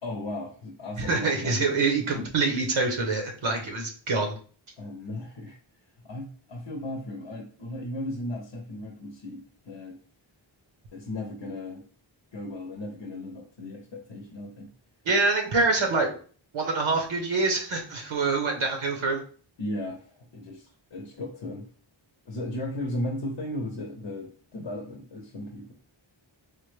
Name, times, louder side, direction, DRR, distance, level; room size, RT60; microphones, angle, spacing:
voice 1, 0.0-2.3 4.8-5.6 6.0-10.0 10.9-11.8 12.3-14.7 19.6-21.7 22.3-25.7, left 1 dB, 70° left, 2 dB, 0.7 m, -36 dB
voice 2, 1.0-4.3 15.0-16.1 16.5-19.2, right 3 dB, 80° right, 2 dB, 0.8 m, -25 dB
3.3 x 2.1 x 3.2 m, 0.42 s
wide cardioid pair, 50°, 48 cm